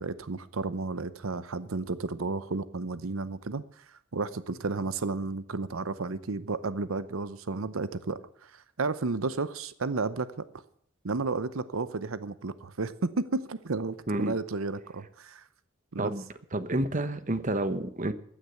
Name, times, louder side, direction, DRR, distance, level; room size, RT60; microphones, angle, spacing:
voice 1, 0.0-10.4 11.0-15.4 15.9-16.1, right 3 dB, 90° right, 15 dB, 0.8 m, -32 dB
voice 2, 16.5-18.1, right 1 dB, 40° right, 12 dB, 1.1 m, -29 dB
15.0 x 10.0 x 7.0 m, 0.67 s
head